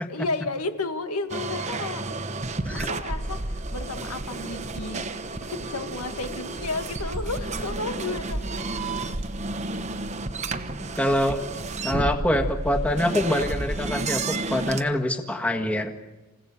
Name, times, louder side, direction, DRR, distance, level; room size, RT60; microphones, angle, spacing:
voice 1, 0.0-2.0 2.7-8.4 8.7-8.8, left 3 dB, 90° left, 7 dB, 1.8 m, -32 dB
sound 1, 1.3-14.8, right 2 dB, 30° right, 1.0 m, -31 dB
voice 2, 10.9-11.4 11.8-15.9, left 1 dB, 5° left, 3 dB, 1.6 m, -25 dB
28.0 x 16.0 x 8.4 m, 1.1 s
head